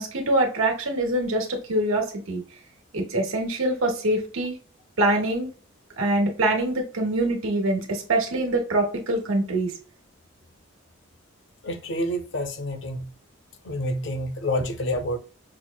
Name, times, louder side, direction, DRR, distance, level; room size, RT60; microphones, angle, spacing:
voice 1, 0.0-2.4 2.9-4.6 5.0-5.5 6.0-9.7, right 1 dB, 80° right, 1.2 m, -24 dB
voice 2, 11.6-13.1 13.6-15.2, equal, 60° left, 0.6 m, -28 dB
6.0 x 2.0 x 2.2 m
head